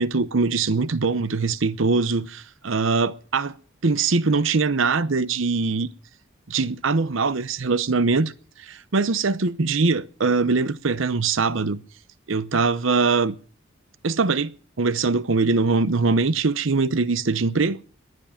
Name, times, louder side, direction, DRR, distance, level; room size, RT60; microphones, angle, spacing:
voice 1, 0.0-3.5 3.8-5.9 6.5-8.3 8.7-11.8 12.3-13.4 14.0-17.8, right 4 dB, 75° right, 0.8 m, -22 dB
19.0 x 11.5 x 5.8 m
head